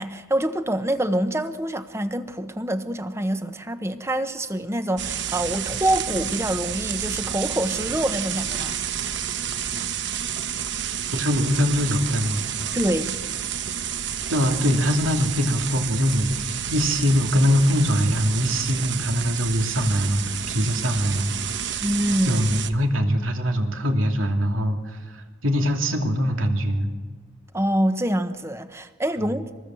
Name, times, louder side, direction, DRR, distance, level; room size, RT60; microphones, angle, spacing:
voice 1, 0.0-8.8 12.7-13.2 21.8-22.4 27.5-29.5, right 1 dB, 15° right, 10 dB, 1.0 m, -26 dB
sound 1, 5.0-22.7, right 8 dB, 60° right, 1.0 m, -30 dB
voice 2, 11.1-12.7 14.3-21.3 21.6-21.7 22.2-26.9 29.2-29.4, equal, 80° right, 3 dB, 2.8 m, -23 dB
24.5 x 20.5 x 7.7 m, 1.5 s
head